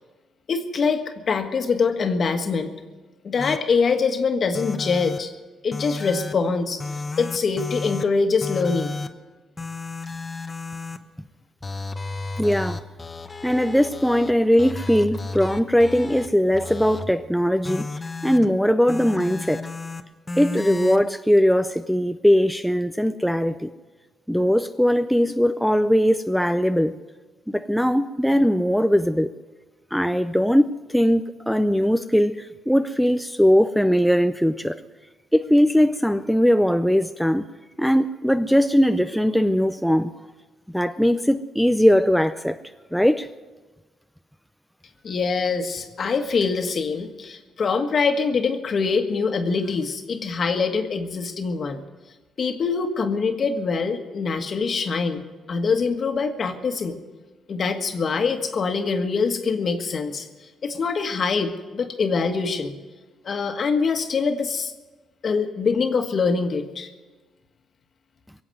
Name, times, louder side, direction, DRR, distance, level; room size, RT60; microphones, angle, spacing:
voice 1, 0.5-2.7 3.2-5.3 5.6-6.8 7.2-8.9 45.0-51.8 52.4-57.0 57.5-60.3 60.6-62.8 63.2-64.7 65.2-66.9, left 5 dB, 50° left, 6 dB, 1.5 m, -24 dB
sound 1, 3.4-3.6 4.5-5.2 5.7-6.3 6.8-8.0 8.4-9.1 9.6-11.0 11.6-14.3 14.6-16.3 16.5-17.1 17.6-18.5 18.9-20.0 20.3-21.0, left 3 dB, 25° left, 1.0 m, -32 dB
voice 2, 12.4-12.8 13.4-17.9 18.2-19.7 20.4-23.7 24.3-26.9 27.5-29.3 29.9-34.8 35.3-37.5 37.8-40.1 40.7-42.6 42.9-43.3, equal, ahead, 8 dB, 0.5 m, -20 dB
23.0 x 8.0 x 7.7 m, 1.3 s
cardioid pair, 90°, 0 cm